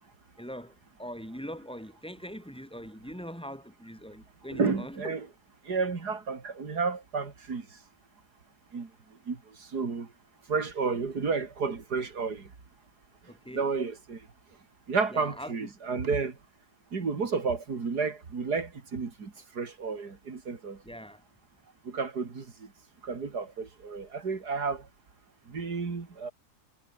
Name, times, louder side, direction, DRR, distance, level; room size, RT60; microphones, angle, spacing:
voice 1, 0.4-5.2 13.3-13.7 15.1-16.0 20.8-21.2, equal, 5° left, 6.1 m, -42 dB
voice 2, 4.5-5.3 5.7-7.6 8.7-8.9 9.3-9.4 9.7-10.1 10.5-12.4 13.5-14.2 14.9-16.3 16.9-20.8 21.9-22.4 23.0-24.8 25.5-26.3, right 4 dB, 75° right, 3.3 m, -31 dB
omnidirectional pair, 1.7 m